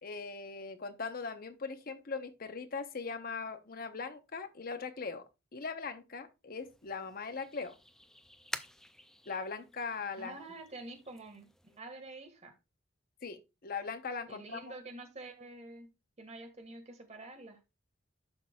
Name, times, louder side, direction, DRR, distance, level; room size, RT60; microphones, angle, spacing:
voice 1, 0.0-5.2 5.5-7.8 9.3-10.4 13.2-14.6, left 4 dB, 50° left, 0.9 m, -40 dB
sound 1, 6.6-11.8, left 1 dB, ahead, 0.4 m, -49 dB
voice 2, 10.2-12.5 14.3-15.9 16.2-17.6, right 2 dB, 35° right, 1.7 m, -48 dB
11.0 x 5.9 x 2.3 m
head